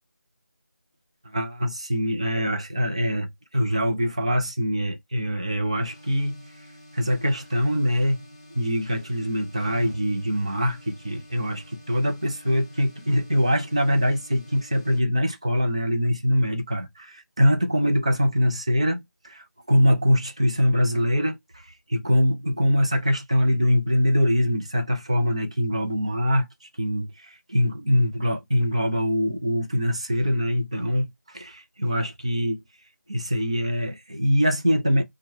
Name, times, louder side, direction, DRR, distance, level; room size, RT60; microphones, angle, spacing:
voice 1, 1.2-6.5 6.9-8.2 8.5-32.6 33.1-35.0, equal, 20° right, 0.4 m, -23 dB
sound 1, 5.8-15.0, equal, 25° left, 0.8 m, -49 dB
4.3 x 2.1 x 2.7 m
figure-of-eight pair, 165°, 9 cm